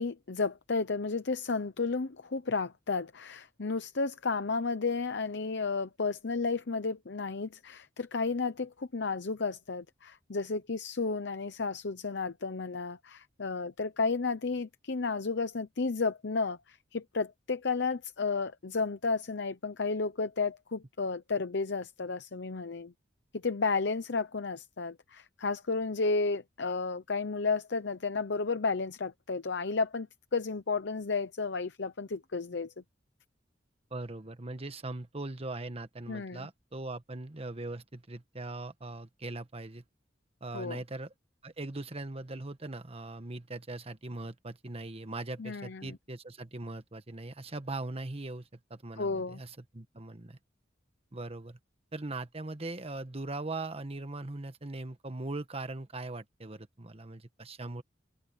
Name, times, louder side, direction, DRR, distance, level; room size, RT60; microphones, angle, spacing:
voice 1, 0.0-22.9 23.3-32.7 36.1-36.5 40.5-40.8 45.4-46.0 49.0-49.4, left 4 dB, 65° left, 0.8 m, -32 dB
voice 2, 33.9-39.8 40.4-41.1 41.4-50.4 51.1-51.6 51.9-57.8, right 2 dB, 35° right, 1.3 m, -40 dB
open air
head